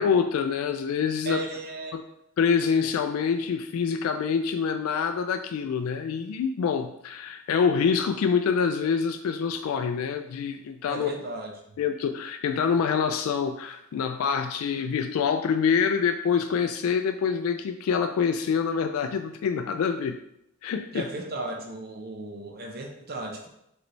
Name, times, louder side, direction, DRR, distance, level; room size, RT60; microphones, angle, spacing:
voice 1, 0.0-1.4 1.9-2.0 2.4-11.1 11.8-20.2 20.6-21.1, left 6 dB, 80° left, 9 dB, 0.3 m, -26 dB
voice 2, 1.2-2.0 10.9-11.8 20.9-23.5, right 2 dB, 45° right, 2 dB, 0.7 m, -36 dB
5.0 x 3.2 x 3.1 m, 0.79 s
head